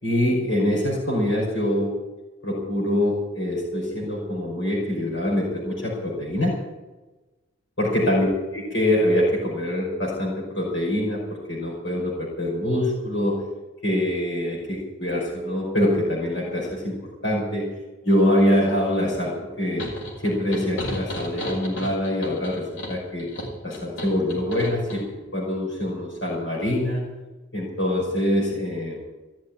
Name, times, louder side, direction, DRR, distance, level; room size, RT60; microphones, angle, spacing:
voice 1, 0.0-1.9 2.4-6.5 7.8-13.4 13.8-16.9 17.2-17.7 18.0-19.3 19.6-19.8 20.2-23.3 23.6-25.0 25.3-27.0 27.5-29.0, left 1 dB, 65° left, -3 dB, 5.4 m, -24 dB
sound 1, 19.8-25.0, left 1 dB, 80° left, 5.9 m, -34 dB
16.5 x 7.3 x 9.9 m, 1.1 s
head